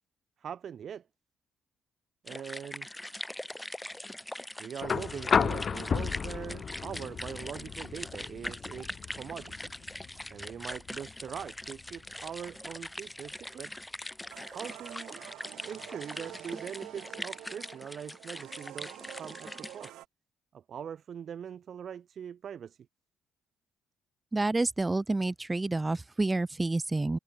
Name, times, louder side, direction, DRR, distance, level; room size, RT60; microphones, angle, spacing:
voice 1, 0.4-1.0 2.2-2.9 4.6-9.8 10.3-13.7 14.5-15.2 15.6-20.0 20.5-22.8, right 8 dB, 55° right, 5.1 m, -42 dB
sound 1, 2.3-19.9, left 1 dB, 10° left, 6.8 m, -42 dB
sound 2, 4.8-12.9 14.3-14.4, left 6 dB, 45° left, 1.3 m, -34 dB
sound 3, 14.3-20.1, right 15 dB, 90° right, 6.6 m, -48 dB
voice 2, 24.3-27.2, right 2 dB, 15° right, 0.4 m, -29 dB
cardioid pair, 90°, 0 cm